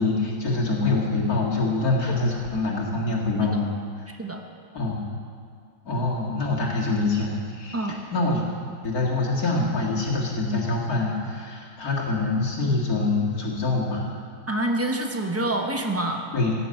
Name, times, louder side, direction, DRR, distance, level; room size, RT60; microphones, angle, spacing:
voice 1, 0.0-3.7 4.7-5.0 5.9-8.4 8.8-14.2 16.3-16.5, left 3 dB, 60° left, -3 dB, 2.5 m, -25 dB
voice 2, 4.1-4.4 7.7-7.9 14.5-16.3, right 1 dB, 10° right, 3 dB, 0.8 m, -27 dB
16.0 x 7.0 x 7.8 m, 2.2 s
omnidirectional pair, 1.8 m